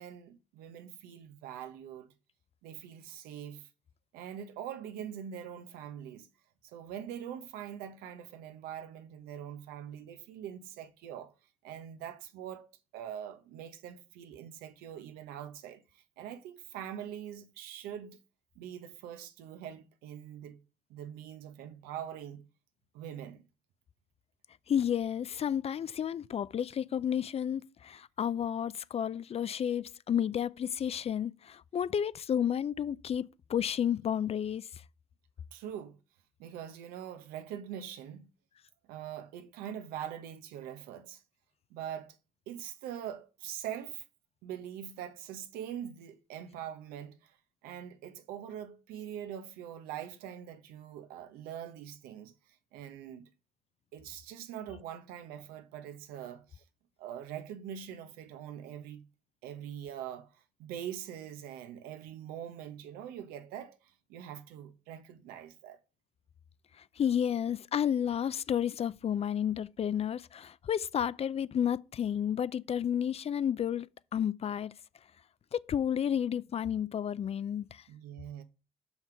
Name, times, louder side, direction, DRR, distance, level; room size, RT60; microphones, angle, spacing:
voice 1, 0.0-2.1 2.6-3.7 4.1-6.3 6.6-11.3 11.6-12.7 12.9-18.2 18.6-20.6 20.9-22.4 22.9-23.5 35.5-35.9 36.4-38.3 38.9-41.2 41.7-42.2 42.5-44.0 44.4-47.4 47.6-52.3 52.7-53.3 53.9-56.6 57.0-59.0 59.4-65.8 77.9-78.4, right 10 dB, 90° right, 1.0 m, -43 dB
voice 2, 24.7-34.7 66.8-74.8 75.5-77.8, left 9 dB, 45° left, 0.4 m, -31 dB
5.9 x 5.6 x 4.5 m
supercardioid pair, 70°, 15 cm